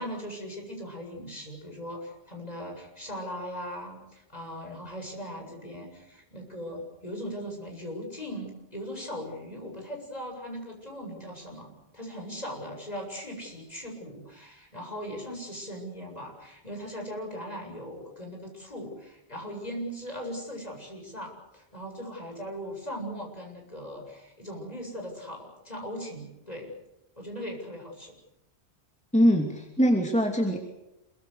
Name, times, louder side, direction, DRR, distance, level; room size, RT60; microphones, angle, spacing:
voice 1, 0.0-26.7 27.2-28.2, equal, 35° left, 1 dB, 8.0 m, -39 dB
voice 2, 29.1-30.6, equal, 5° left, 2 dB, 2.8 m, -22 dB
27.5 x 23.5 x 6.8 m, 0.93 s
omnidirectional pair, 1.1 m